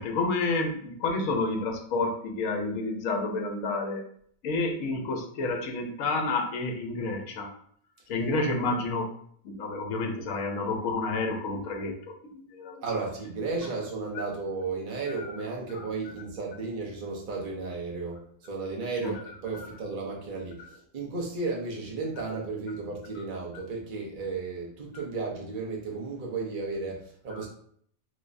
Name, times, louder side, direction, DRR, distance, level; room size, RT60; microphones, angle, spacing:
voice 1, 0.0-4.0 4.4-7.5 8.1-9.1 9.4-12.8 15.2-15.3 15.7-15.9 19.0-19.1 19.5-19.7 27.3-27.4, left 3 dB, 70° left, 2 dB, 1.0 m, -30 dB
voice 2, 12.8-27.5, right 3 dB, 40° right, -2 dB, 0.8 m, -34 dB
3.4 x 3.1 x 2.5 m, 0.62 s
omnidirectional pair, 1.5 m